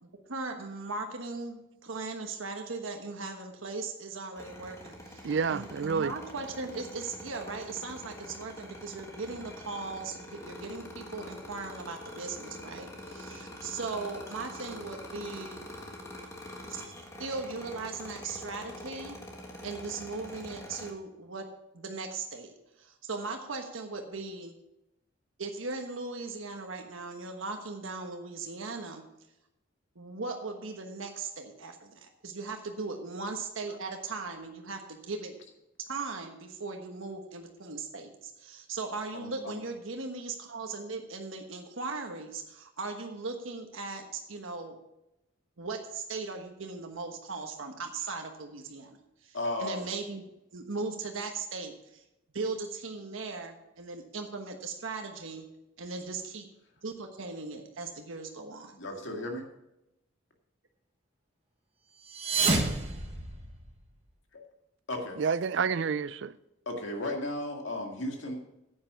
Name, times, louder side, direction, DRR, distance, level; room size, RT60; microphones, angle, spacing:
voice 1, 0.0-15.6 16.6-16.9 17.2-19.2 19.6-21.5 21.7-22.5 22.8-24.5 25.4-29.0 29.9-35.3 35.9-44.8 45.6-50.2 50.5-52.0 52.3-55.5 55.8-56.5 56.8-58.8, right 3 dB, 85° right, 1.3 m, -38 dB
sound 1, 4.4-20.9, left 1 dB, 15° left, 1.4 m, -45 dB
voice 2, 5.2-6.1 65.2-66.4, right 5 dB, 65° right, 0.4 m, -29 dB
voice 3, 39.1-39.6 49.3-49.8 58.8-59.4 64.3-64.4 64.9-65.2 66.7-68.3, left 1 dB, 70° left, 2.1 m, -35 dB
Sword Thud, 62.0-63.9, right 3 dB, 30° right, 1.5 m, -29 dB
9.9 x 8.7 x 5.6 m
head